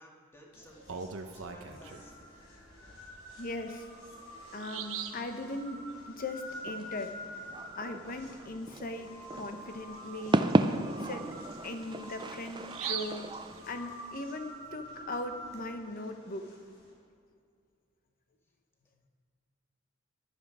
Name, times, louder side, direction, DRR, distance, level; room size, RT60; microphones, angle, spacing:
voice 1, 0.0-2.2, equal, 10° left, -2 dB, 2.0 m, -56 dB
sound 1, 0.5-16.9, equal, 70° left, 4.7 m, -48 dB
Bird vocalization bird call bird song, 0.6-2.1 3.6-3.7 4.1-4.2 4.6-5.3 8.8-8.9 9.3-9.4 9.9-14.2, right 7 dB, 70° right, 0.9 m, -42 dB
voice 2, 3.4-3.9 4.5-7.1 7.7-10.5 11.0-11.2 11.6-13.3 13.7-16.5, left 2 dB, 45° left, 6 dB, 1.1 m, -39 dB
sound 2, 6.5-13.7, right 2 dB, 20° right, 0.5 m, -34 dB
17.0 x 12.0 x 5.0 m, 2.2 s
head